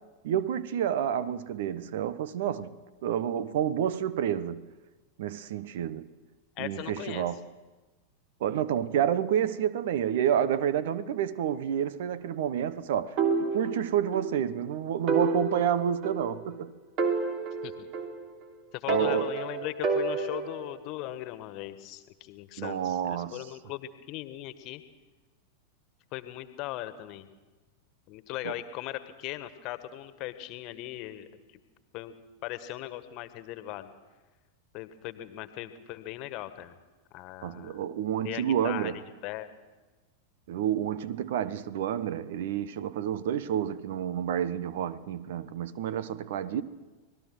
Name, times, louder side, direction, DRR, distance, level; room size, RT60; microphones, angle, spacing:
voice 1, 0.2-4.6 5.2-6.1 6.6-7.4 8.4-13.2 13.5-16.7 18.9-19.3 22.6-23.4 28.4-28.5 37.4-39.0 40.5-46.6, right 9 dB, 55° right, 1.0 m, -29 dB
voice 2, 6.6-7.3 17.6-17.9 18.7-24.8 26.1-27.3 28.1-31.3 31.9-32.1 32.4-33.9 34.7-36.7 37.1-37.8 38.2-39.5, left 14 dB, 40° left, 1.7 m, -39 dB
sound 1, 13.2-14.3 14.6-14.7 15.1-16.6 17.0-18.4 18.9-20.7, right 4 dB, 35° right, 3.0 m, -29 dB
25.5 x 18.5 x 6.2 m
figure-of-eight pair, 90°, 0 cm